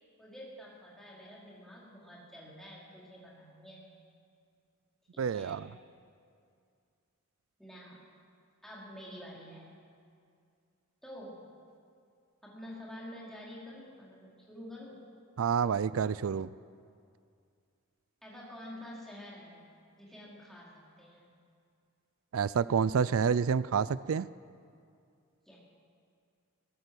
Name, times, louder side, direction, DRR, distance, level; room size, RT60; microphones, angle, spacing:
voice 1, 0.2-3.8 5.1-5.7 7.6-8.1 8.6-9.7 11.0-11.4 12.4-15.0 18.2-19.6 20.0-21.3 25.5-25.6, equal, ahead, -6 dB, 4.7 m, -48 dB
voice 2, 5.2-5.7 15.4-16.5 22.3-24.3, right 6 dB, 80° right, 18 dB, 0.4 m, -28 dB
19.5 x 17.0 x 8.0 m, 2.3 s
head